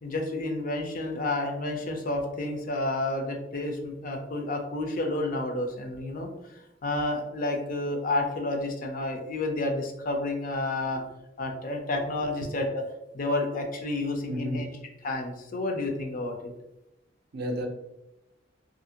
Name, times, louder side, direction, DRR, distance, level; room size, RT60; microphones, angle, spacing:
voice 1, 0.0-11.0 11.4-12.8 13.1-14.7 15.0-16.5, left 2 dB, 50° left, 3 dB, 0.5 m, -30 dB
voice 2, 14.3-14.8 17.3-17.7, equal, 60° right, 4 dB, 0.5 m, -31 dB
2.8 x 2.5 x 2.8 m, 0.92 s
head